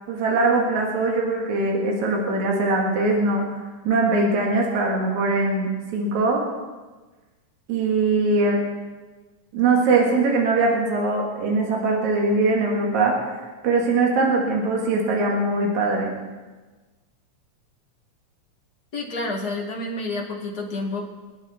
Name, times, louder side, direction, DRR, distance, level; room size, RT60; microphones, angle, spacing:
voice 1, 0.1-3.6 3.8-6.4 7.7-8.6 9.5-16.1, right 3 dB, 70° right, -1 dB, 3.3 m, -21 dB
voice 2, 18.9-21.0, left 2 dB, 35° left, -1 dB, 2.1 m, -29 dB
25.5 x 9.5 x 4.2 m, 1.3 s
omnidirectional pair, 3.4 m